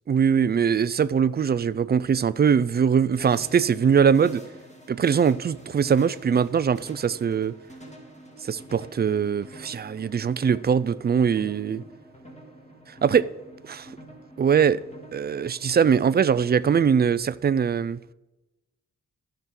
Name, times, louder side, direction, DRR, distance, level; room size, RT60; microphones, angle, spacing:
voice 1, 0.1-4.4 4.9-7.5 8.5-11.8 13.0-13.3 13.6-13.9 14.4-14.8 15.1-18.0, right 7 dB, 30° right, 0.4 m, -22 dB
sound 1, 3.2-16.8, right 1 dB, 20° left, 2.2 m, -47 dB
15.0 x 5.9 x 3.8 m
cardioid pair, 80°, 32 cm